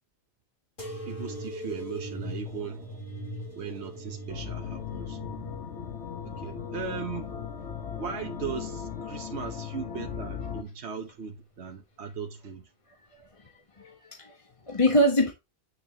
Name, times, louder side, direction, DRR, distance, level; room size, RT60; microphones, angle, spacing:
sound 1, 0.8-8.0 8.5-9.3 10.1-10.6 11.6-11.7, right 1 dB, 50° left, 4.2 m, -41 dB
voice 1, 1.1-2.9 3.5-5.2 6.2-7.3 8.0-12.7, right 6 dB, 75° right, 1.3 m, -38 dB
sound 2, 1.3-9.1, left 1 dB, 5° left, 5.3 m, -53 dB
sound 3, 4.3-10.6, left 8 dB, 90° left, 1.3 m, -37 dB
voice 2, 13.2-15.3, equal, 30° left, 1.4 m, -26 dB
9.1 x 6.4 x 2.9 m
omnidirectional pair, 1.1 m